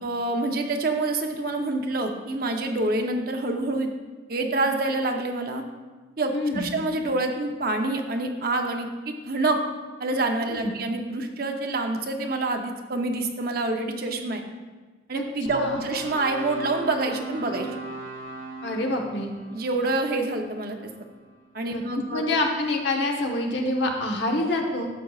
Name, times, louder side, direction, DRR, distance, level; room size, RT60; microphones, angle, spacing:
voice 1, 0.0-3.9 4.3-5.6 6.2-9.6 10.0-14.4 15.1-17.7 19.5-20.8 21.5-22.2, right 2 dB, 50° right, 4 dB, 0.7 m, -27 dB
voice 2, 6.3-6.7 10.5-10.7 15.1-15.2 15.5-15.8 18.6-19.3 21.7-21.8 22.1-24.9, left 2 dB, 65° left, 1 dB, 1.1 m, -26 dB
sound 1, 15.4-21.7, right 2 dB, 90° right, 1.2 m, -39 dB
12.0 x 7.7 x 2.4 m, 1.3 s
head